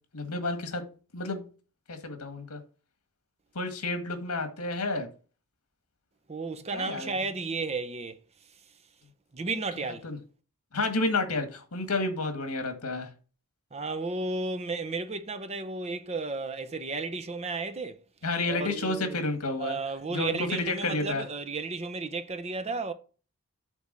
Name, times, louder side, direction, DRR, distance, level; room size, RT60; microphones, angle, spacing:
voice 1, 0.1-0.8 1.1-1.4 1.9-2.6 3.6-5.1 6.7-7.1 10.0-10.2 10.7-13.1 18.2-19.8 20.1-21.2, left 2 dB, 75° left, 1.7 m, -30 dB
voice 2, 6.3-8.2 9.3-10.1 12.6-12.7 13.7-18.0 18.5-19.2 19.6-22.9, right 3 dB, 30° right, 0.7 m, -33 dB
8.2 x 3.4 x 6.6 m
head